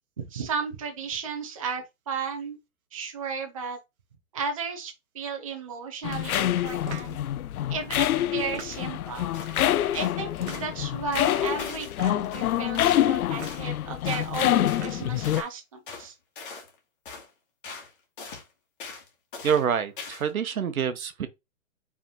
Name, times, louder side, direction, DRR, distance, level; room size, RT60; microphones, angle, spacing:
voice 1, 0.2-2.6 2.9-3.8 4.3-7.2 7.7-9.3 9.9-16.1, right 5 dB, 25° right, 0.6 m, -34 dB
sound 1, 6.0-15.4, left 12 dB, 80° left, 0.5 m, -26 dB
sound 2, 6.8-7.2 8.4-9.1 10.3-10.9 11.9-12.4 13.3-13.6 14.5-15.2, right 5 dB, 50° right, 1.2 m, -42 dB
sound 3, 9.3-9.6 9.9-10.2 10.5-10.7 11.1-11.9 12.3-12.5 12.9-13.1 13.4-13.7 14.1-14.4 14.7-14.9 15.2-15.5 15.9-16.1 16.4-16.7 17.1-17.3 17.6-17.9 18.2-18.4 18.8-19.1 19.3-19.7 20.0-20.3, left 4 dB, 35° left, 1.5 m, -40 dB
voice 2, 19.4-21.3, right 7 dB, 75° right, 1.0 m, -26 dB
4.7 x 3.5 x 3.0 m
hypercardioid pair, 165°, 42 cm